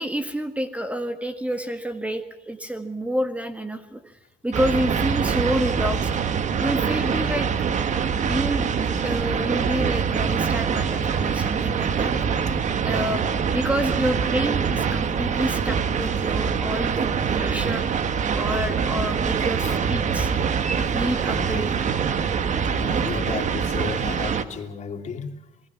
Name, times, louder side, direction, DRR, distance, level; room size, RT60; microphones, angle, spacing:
voice 1, 0.0-4.2 4.4-6.1 6.6-7.5 8.3-8.7 9.0-12.1 12.8-13.2 13.5-17.9 18.4-20.3 20.8-21.7, equal, 10° right, 7 dB, 1.8 m, -28 dB
sound 1, 4.5-24.4, right 6 dB, 45° right, 1.5 m, -24 dB
voice 2, 21.4-21.7 22.6-25.3, left 6 dB, 45° left, 4 dB, 3.0 m, -33 dB
28.0 x 19.5 x 6.0 m, 0.94 s
cardioid pair, 110°, 17 cm